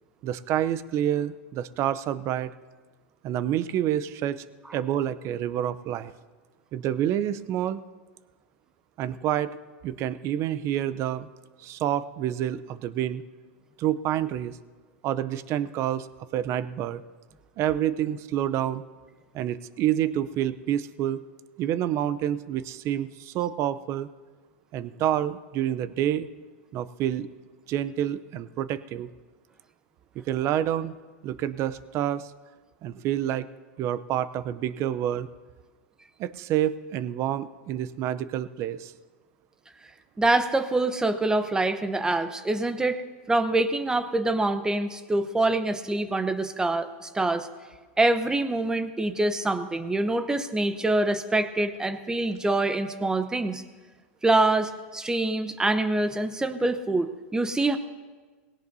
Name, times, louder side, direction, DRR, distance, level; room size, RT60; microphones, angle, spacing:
voice 1, 0.2-2.5 3.2-4.4 4.7-6.1 6.7-7.8 9.0-9.6 9.8-11.3 11.6-13.2 13.8-14.6 15.0-16.1 16.3-17.0 17.6-18.8 19.3-21.2 21.6-24.1 24.7-26.3 26.7-27.3 27.7-29.1 30.2-30.9 31.2-32.3 32.8-33.5 33.8-35.3 36.2-38.9, right 11 dB, 45° right, 15 dB, 0.6 m, -28 dB
voice 2, 40.2-43.0 43.3-47.5 48.0-53.6 54.2-57.8, right 2 dB, 10° right, 10 dB, 0.9 m, -25 dB
19.5 x 17.5 x 2.7 m, 1.4 s
hypercardioid pair, 115°, 7 cm